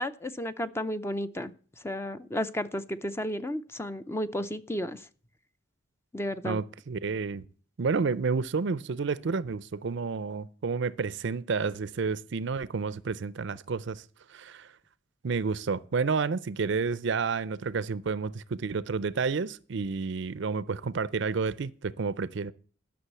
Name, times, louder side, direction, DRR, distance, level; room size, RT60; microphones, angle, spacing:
voice 1, 0.0-1.5 1.8-5.0 6.1-6.6, equal, 10° left, 0.5 m, -33 dB
voice 2, 6.4-7.4 7.8-14.0 14.3-14.7 15.2-22.5, right 4 dB, 60° right, 0.5 m, -30 dB
11.5 x 6.2 x 8.1 m
head